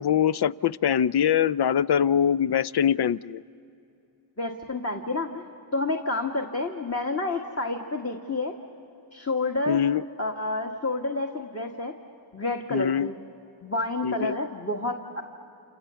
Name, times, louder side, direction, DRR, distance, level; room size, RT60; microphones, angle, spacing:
voice 1, 0.0-3.4 9.7-10.0 12.7-13.1 14.0-14.4, left 9 dB, 55° left, 17 dB, 0.6 m, -23 dB
voice 2, 4.4-8.6 9.1-9.9 10.2-11.9 12.3-13.2 13.6-15.2, left 2 dB, 30° left, 1 dB, 1.8 m, -29 dB
28.5 x 27.5 x 7.0 m, 2.8 s
cardioid pair, 50°, 49 cm